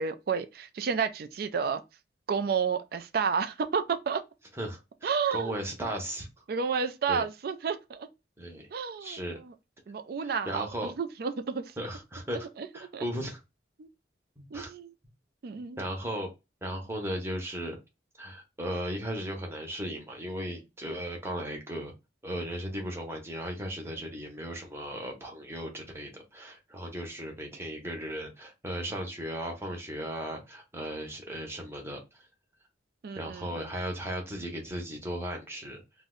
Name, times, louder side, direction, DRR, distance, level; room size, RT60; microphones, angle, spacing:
voice 1, 0.0-1.8 2.3-4.2 5.0-5.6 6.5-8.1 8.7-9.2 9.9-11.7 12.6-12.7 12.9-13.1 13.8-13.9 14.5-14.9 15.4-15.8 33.0-33.7, right 6 dB, 55° right, 0.4 m, -31 dB
voice 2, 4.6-6.3 7.1-7.2 8.4-8.7 9.0-9.4 10.2-10.9 11.8-12.5 12.7-13.4 14.4-14.7 15.8-16.3 16.6-17.8 18.2-21.9 22.2-32.3 33.2-35.8, equal, 15° right, 0.7 m, -36 dB
2.6 x 2.1 x 3.6 m
head